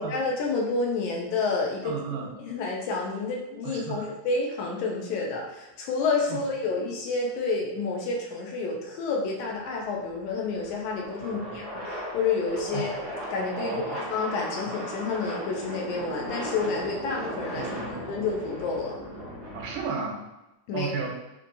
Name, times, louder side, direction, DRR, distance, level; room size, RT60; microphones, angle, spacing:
voice 1, 0.0-2.0 2.4-12.9 13.3-18.9 20.7-21.1, left 4 dB, 75° left, -1 dB, 1.9 m, -29 dB
voice 2, 1.8-2.3 3.6-4.1 6.3-6.4 11.2-11.6 12.7-13.0 13.6-14.0 17.5-18.0 19.5-20.2 20.7-21.1, right 5 dB, 85° right, 1 dB, 2.3 m, -34 dB
sound 1, 9.5-19.9, equal, 40° right, 0.8 m, -37 dB
5.1 x 2.9 x 2.5 m, 0.96 s
omnidirectional pair, 3.7 m